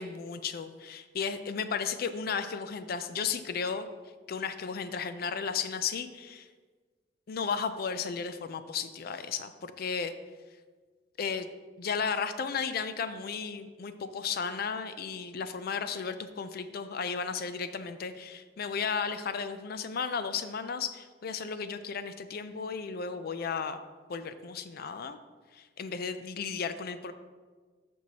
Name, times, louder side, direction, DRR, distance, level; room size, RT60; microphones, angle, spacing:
voice 1, 0.0-3.9 4.3-6.5 7.3-10.1 11.2-11.5 11.8-23.8 24.1-25.2 25.5-27.1, left 6 dB, 55° left, 11 dB, 0.4 m, -34 dB
13.0 x 4.5 x 2.9 m, 1.4 s
head